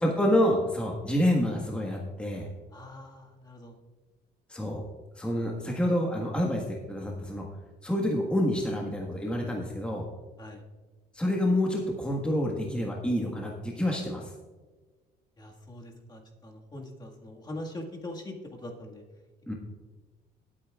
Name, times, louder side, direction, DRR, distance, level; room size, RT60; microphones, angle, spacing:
voice 1, 0.0-2.5 4.5-4.8 5.1-7.5 7.8-10.1 11.1-14.3 19.5-19.6, left 1 dB, 5° left, -1 dB, 1.5 m, -28 dB
voice 2, 2.7-3.8 10.4-10.6 15.4-18.3 18.6-19.0, left 1 dB, 25° left, 1 dB, 1.8 m, -42 dB
19.5 x 8.7 x 2.4 m, 1.3 s
cardioid pair, 110°, 17 cm